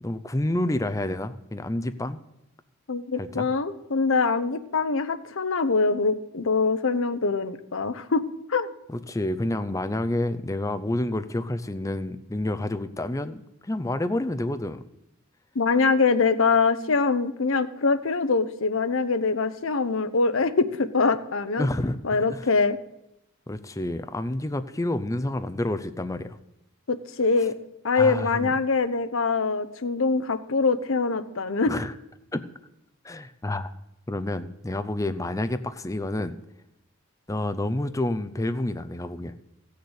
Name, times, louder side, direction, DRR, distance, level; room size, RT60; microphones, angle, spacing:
voice 1, 0.0-2.2 3.2-3.5 8.9-14.8 21.6-22.5 23.5-26.4 27.9-28.5 31.7-31.9 32.3-32.4 33.0-33.7 34.1-36.4 37.3-39.3, left 1 dB, 15° left, 10 dB, 0.5 m, -29 dB
voice 2, 2.9-8.7 15.6-21.7 22.0-22.8 26.9-27.6 27.8-31.7, left 4 dB, 65° left, 11 dB, 0.8 m, -24 dB
14.5 x 6.7 x 8.1 m, 0.84 s
head